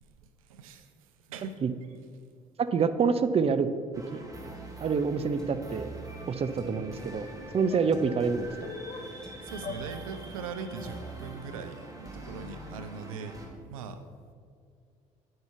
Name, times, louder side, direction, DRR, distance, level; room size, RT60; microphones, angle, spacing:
voice 1, 0.2-0.9 1.3-1.6 8.9-13.4 13.7-14.0, right 5 dB, 90° right, 9 dB, 0.5 m, -41 dB
voice 2, 2.6-3.7 4.1-4.2 4.8-5.9 6.3-7.3 7.5-8.7, right 5 dB, 35° right, 11 dB, 0.6 m, -27 dB
sound 1, 3.9-13.5, right 2 dB, 20° right, 1.7 m, -44 dB
sound 2, 5.4-5.7 6.5-6.9 7.9-8.1 9.2-9.5 10.2-10.4 10.7-10.9 11.2-11.4, left 1 dB, 5° left, 1.9 m, -47 dB
sound 3, 7.5-7.8 8.6-9.1 9.6-9.8 10.7-11.1, left 5 dB, 40° left, 1.0 m, -41 dB
9.4 x 5.5 x 4.6 m, 2.2 s
hypercardioid pair, 55°, 17 cm